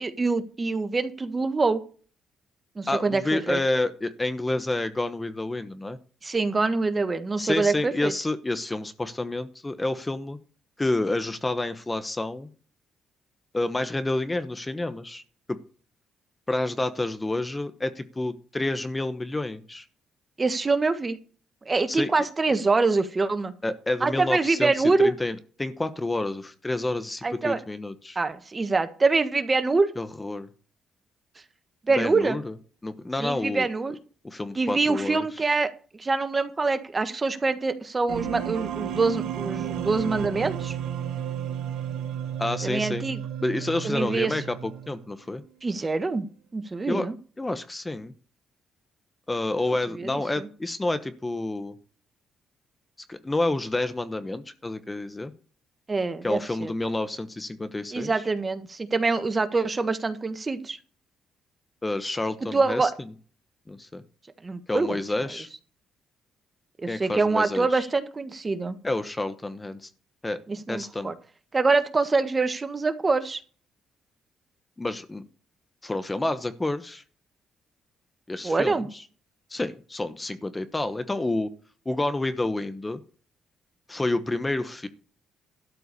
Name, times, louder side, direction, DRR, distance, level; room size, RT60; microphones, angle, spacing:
voice 1, 0.0-1.8 2.8-3.6 6.2-8.1 20.4-21.2 21.6-23.5 24.0-25.1 27.2-27.6 28.1-29.9 31.9-32.4 33.2-33.9 34.5-35.7 35.9-40.8 42.6-43.2 43.8-44.3 45.6-46.3 46.5-47.2 50.0-50.5 55.9-56.7 57.9-60.8 62.5-62.9 64.4-65.0 66.8-68.8 70.5-71.1 71.5-73.4 78.4-78.9, right 3 dB, 25° right, 10 dB, 1.4 m, -25 dB
voice 2, 2.9-6.0 7.4-10.4 10.8-12.5 13.5-15.2 15.5-15.6 16.5-19.8 21.9-22.1 23.6-28.2 30.0-30.5 32.0-32.5 32.8-33.7 34.2-35.3 42.4-43.1 43.4-45.4 46.9-47.1 47.4-48.1 49.3-51.7 53.1-55.3 56.2-58.2 61.8-63.1 63.7-64.0 64.7-65.5 66.9-67.8 68.8-69.9 70.2-70.4 70.7-71.1 74.8-75.2 75.8-77.0 78.3-79.0 79.5-81.5 81.8-83.0 83.9-84.9, left 2 dB, 15° left, 11 dB, 1.0 m, -29 dB
sound 1, 38.1-45.1, right 10 dB, 90° right, 1.5 m, -32 dB
12.5 x 4.6 x 8.2 m, 0.40 s
cardioid pair, 90°, 0 cm